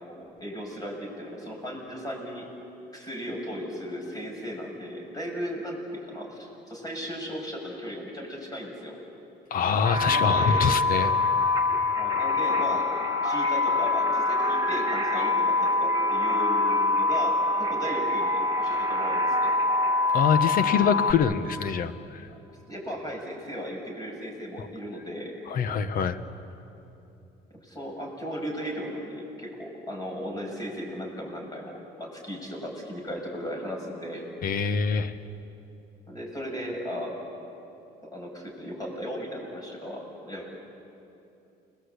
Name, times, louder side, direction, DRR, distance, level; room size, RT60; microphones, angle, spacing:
voice 1, 0.0-2.5 2.9-9.0 10.1-10.7 11.9-12.9 13.2-19.5 22.3-22.4 22.7-25.4 27.6-34.3 36.1-37.2 38.0-40.5, equal, 20° left, 0 dB, 7.2 m, -36 dB
voice 2, 9.5-11.1 20.1-22.3 24.6-24.7 25.5-26.2 34.4-35.1, left 6 dB, 55° left, 11 dB, 1.3 m, -25 dB
sound 1, 9.8-21.1, left 3 dB, 20° right, 2.0 m, -24 dB
29.0 x 21.5 x 8.5 m, 2.8 s
cardioid pair, 110°, 17 cm